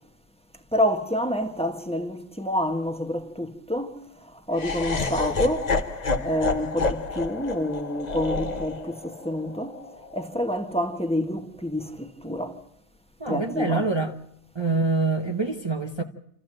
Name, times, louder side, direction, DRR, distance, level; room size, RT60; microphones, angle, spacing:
voice 1, 0.7-4.0 4.2-5.7 6.2-9.8 10.1-12.6 13.3-13.8, left 1 dB, 5° left, 1.4 m, -28 dB
Laughter, 4.5-10.7, left 3 dB, 40° left, 1.1 m, -29 dB
voice 2, 13.2-14.1 14.5-16.0, right 3 dB, 25° right, 1.0 m, -25 dB
28.0 x 14.0 x 7.7 m
omnidirectional pair, 1.2 m